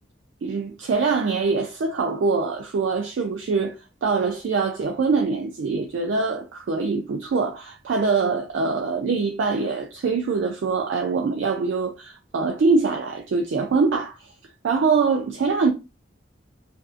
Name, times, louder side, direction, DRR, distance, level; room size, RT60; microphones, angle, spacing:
voice 1, 0.4-3.7 4.0-14.3 14.6-15.7, right 4 dB, 70° right, 0.3 m, -23 dB
2.5 x 2.4 x 2.4 m
head